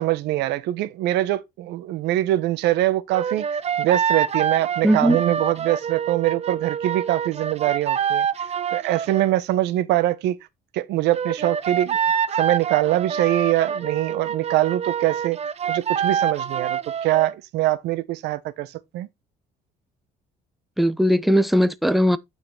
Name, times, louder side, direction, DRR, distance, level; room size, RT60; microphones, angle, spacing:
voice 1, 0.0-3.4 3.8-8.5 8.7-10.4 10.7-12.0 12.3-15.4 15.7-19.1, right 15 dB, 85° right, 1.1 m, -23 dB
sound 1, 3.1-9.3 11.1-17.3, right 7 dB, 40° right, 0.8 m, -26 dB
voice 2, 4.8-5.2 20.8-22.2, equal, ahead, 0.7 m, -18 dB
9.2 x 5.8 x 4.4 m
cardioid pair, 110°, 17 cm